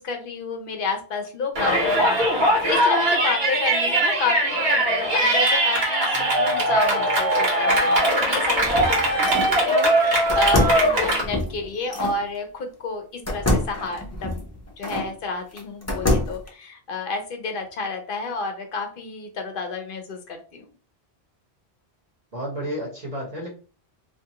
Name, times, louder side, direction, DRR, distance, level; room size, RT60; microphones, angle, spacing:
voice 1, 0.0-1.9 2.2-14.4 14.8-20.7, left 3 dB, 60° left, 5 dB, 0.7 m, -30 dB
Yell, 1.6-11.2, right 1 dB, 65° right, 1.2 m, -20 dB
voice 2, 2.0-2.3 9.2-9.5 22.3-23.5, equal, 40° right, -2 dB, 0.9 m, -33 dB
sound 1, 8.2-9.6 10.3-12.2 13.3-15.1 15.6-16.5, left 1 dB, 20° left, 0.5 m, -26 dB
2.6 x 2.3 x 2.8 m, 0.37 s
omnidirectional pair, 1.1 m